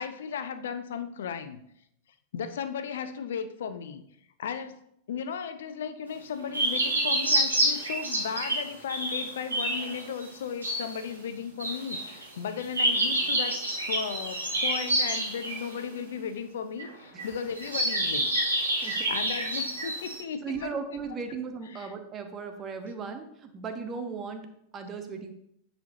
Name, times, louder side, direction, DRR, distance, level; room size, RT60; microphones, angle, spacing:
voice 1, 0.0-1.6 2.3-4.0 4.4-4.8 5.1-18.3 18.8-20.8 21.1-21.2 21.7-21.9, left 7 dB, 60° left, 10 dB, 0.5 m, -36 dB
sound 1, 6.5-8.6 8.9-10.3 10.6-11.0 11.6-12.2 12.6-15.7 16.8-16.9 17.2-17.3 17.6-20.2, right 1 dB, 75° right, 1.9 m, -28 dB
voice 2, 20.4-24.5 24.7-25.3, right 5 dB, 25° right, 6 dB, 0.9 m, -37 dB
9.3 x 4.5 x 2.7 m, 0.73 s
figure-of-eight pair, 90°, 0 cm